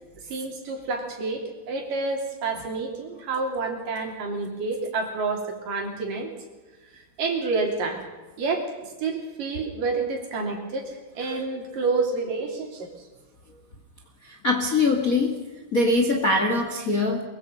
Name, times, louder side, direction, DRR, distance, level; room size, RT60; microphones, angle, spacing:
voice 1, 0.3-6.3 7.2-8.0 8.4-8.6 9.0-10.9 11.1-12.9, right 3 dB, 65° right, 2 dB, 4.9 m, -28 dB
voice 2, 14.2-15.4 15.7-17.2, left 2 dB, 30° left, 3 dB, 1.8 m, -22 dB
23.0 x 23.0 x 5.5 m, 1.2 s
omnidirectional pair, 4.2 m